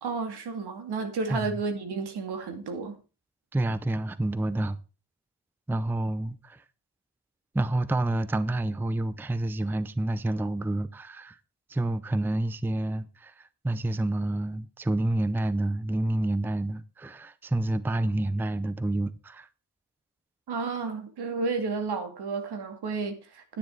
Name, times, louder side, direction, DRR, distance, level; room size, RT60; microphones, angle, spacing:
voice 1, 0.0-3.0 20.5-23.6, right 4 dB, 80° right, 2.5 m, -32 dB
voice 2, 3.5-4.8 5.7-6.6 7.5-11.4 11.7-19.5, right 1 dB, 5° right, 0.5 m, -28 dB
9.8 x 9.7 x 4.5 m
wide cardioid pair, 115°, 39 cm